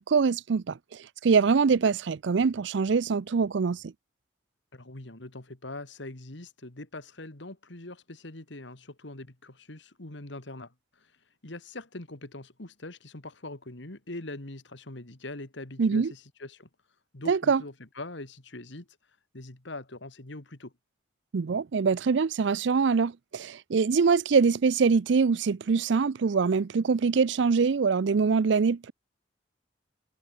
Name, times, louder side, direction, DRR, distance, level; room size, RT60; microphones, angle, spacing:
voice 1, 0.0-3.9 15.8-16.1 17.3-17.6 21.3-28.9, right 5 dB, 70° right, 0.4 m, -24 dB
voice 2, 4.7-11.1 11.4-16.7 17.1-18.9 19.3-20.7, left 2 dB, 70° left, 2.2 m, -42 dB
head